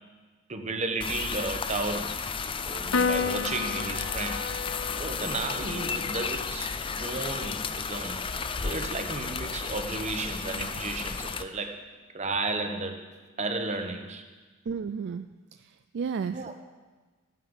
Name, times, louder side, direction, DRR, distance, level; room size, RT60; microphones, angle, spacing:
voice 1, 0.5-2.1 2.6-4.4 4.9-6.7 7.0-8.2 8.6-11.8 12.1-13.0 13.4-14.2 16.3-16.5, right 3 dB, 35° right, 5 dB, 1.1 m, -33 dB
sound 1, 1.0-11.4, left 5 dB, 25° left, 0.5 m, -33 dB
Piano, 2.9-9.6, left 5 dB, 70° left, 0.6 m, -35 dB
voice 2, 14.7-15.3 15.9-16.5, right 6 dB, 55° right, 10 dB, 0.3 m, -32 dB
15.0 x 9.4 x 5.5 m, 1.3 s
head